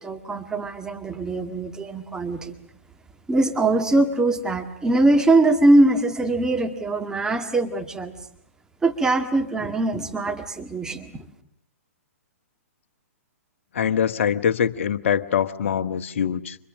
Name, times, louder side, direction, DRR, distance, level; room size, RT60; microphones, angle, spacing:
voice 1, 0.0-2.5 3.3-8.1 8.8-11.2, right 2 dB, 10° right, 6 dB, 1.9 m, -22 dB
voice 2, 13.7-16.6, left 8 dB, 55° left, 12 dB, 1.2 m, -23 dB
29.5 x 26.5 x 6.4 m, 0.67 s
figure-of-eight pair, 115°, 8 cm